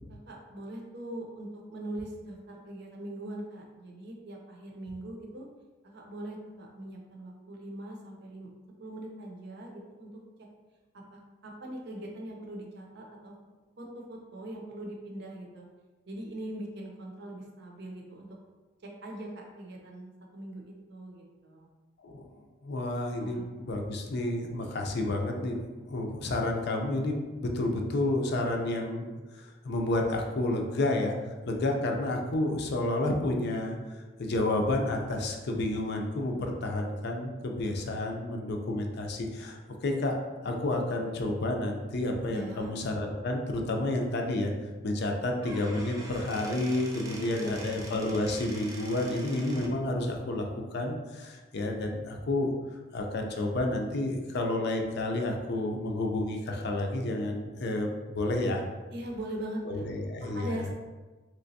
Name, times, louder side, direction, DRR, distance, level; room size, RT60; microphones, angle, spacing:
voice 1, 0.1-5.4 5.8-8.5 8.8-10.1 11.1-13.3 13.8-15.7 16.1-18.3 18.8-21.7 23.1-23.4 42.3-42.7 47.2-47.7 58.9-59.8 60.2-60.7, right 1 dB, 60° right, 0 dB, 0.6 m, -41 dB
voice 2, 22.6-29.1 29.3-31.1 31.5-33.8 34.2-40.2 40.4-44.5 44.8-52.5 52.9-58.6 59.6-60.5, left 2 dB, 60° left, 2 dB, 0.5 m, -30 dB
Squeak / Wood, 45.4-49.8, right 1 dB, 20° right, 0.5 m, -44 dB
3.3 x 2.9 x 2.7 m, 1.2 s
head